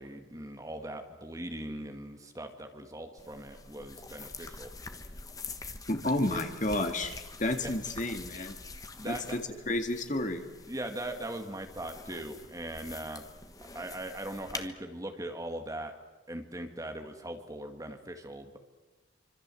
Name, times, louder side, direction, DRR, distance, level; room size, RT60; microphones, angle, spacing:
voice 1, 0.0-4.7 7.6-7.7 9.0-9.4 10.7-13.2 13.7-15.9 16.3-18.6, right 1 dB, 15° right, 5 dB, 1.9 m, -40 dB
sound 1, 3.2-14.7, left 3 dB, 20° left, 1.3 m, -46 dB
voice 2, 5.9-7.1 7.4-8.6 9.0-10.4, left 1 dB, 40° left, 6 dB, 2.1 m, -31 dB
26.0 x 25.5 x 7.8 m, 1.2 s
head